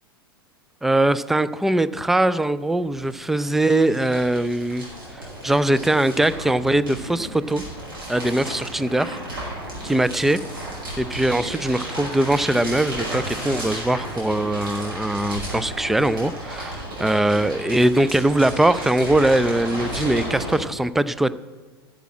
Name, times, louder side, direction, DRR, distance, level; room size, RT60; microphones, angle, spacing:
voice 1, 0.8-4.8 5.2-7.6 8.1-9.2 9.8-10.4 11.0-21.3, right 1 dB, ahead, 16 dB, 0.3 m, -21 dB
sound 1, 1.9-2.0 2.1-20.6, right 1 dB, 65° right, 5.3 m, -33 dB
11.5 x 7.6 x 8.6 m, 1.4 s
figure-of-eight pair, 90°, 13 cm